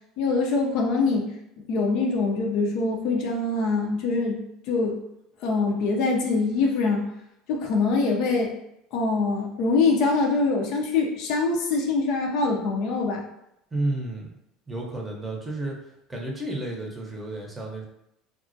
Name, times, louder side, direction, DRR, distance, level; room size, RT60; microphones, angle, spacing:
voice 1, 0.2-1.3 1.7-4.4 4.7-5.0 5.4-7.1 7.5-8.5 8.9-13.2, left 3 dB, 65° left, 1 dB, 0.5 m, -24 dB
voice 2, 13.7-14.3 14.7-17.8, right 2 dB, 15° right, -1 dB, 0.7 m, -31 dB
2.3 x 2.0 x 2.6 m, 0.80 s
hypercardioid pair, 80°, 0 cm